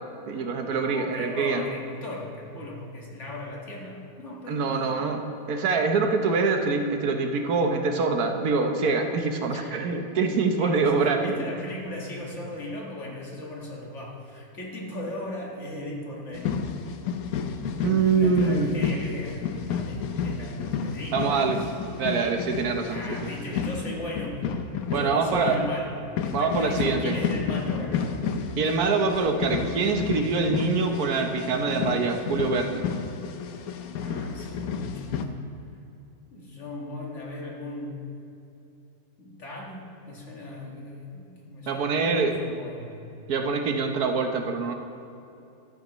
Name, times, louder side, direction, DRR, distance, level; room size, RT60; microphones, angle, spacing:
voice 1, 0.3-1.7 4.5-11.5 17.8-18.7 21.1-21.6 22.0-23.3 24.9-25.5 26.3-27.2 28.6-32.8 41.7-42.3 43.3-44.7, right 4 dB, 70° right, 4 dB, 1.3 m, -25 dB
voice 2, 0.8-5.0 9.4-9.8 10.6-16.5 18.0-21.6 22.9-24.4 24.9-25.9 26.2-28.2 33.8-35.4 36.3-38.0 39.2-43.0, left 1 dB, 50° left, -2 dB, 2.0 m, -38 dB
sound 1, 16.3-35.3, left 6 dB, 70° left, 1.1 m, -31 dB
14.0 x 11.5 x 3.0 m, 2.8 s
omnidirectional pair, 1.7 m